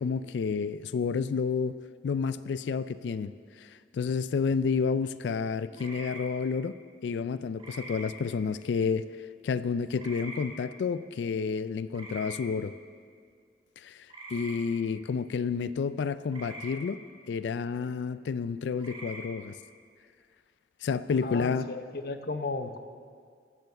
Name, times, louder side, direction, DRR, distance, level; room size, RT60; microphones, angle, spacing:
voice 1, 0.0-3.3 3.6-6.8 7.0-9.0 9.4-12.7 13.8-17.0 17.3-19.6 20.8-21.6, left 5 dB, 85° left, 15 dB, 0.3 m, -30 dB
sound 1, 5.8-6.2 7.6-8.0 10.0-10.5 11.9-12.4 14.1-14.5 16.3-16.7 18.8-19.2, right 2 dB, 30° right, 2.9 m, -43 dB
voice 2, 21.2-22.8, left 3 dB, 55° left, 9 dB, 0.7 m, -34 dB
15.5 x 7.0 x 6.7 m, 2.1 s
head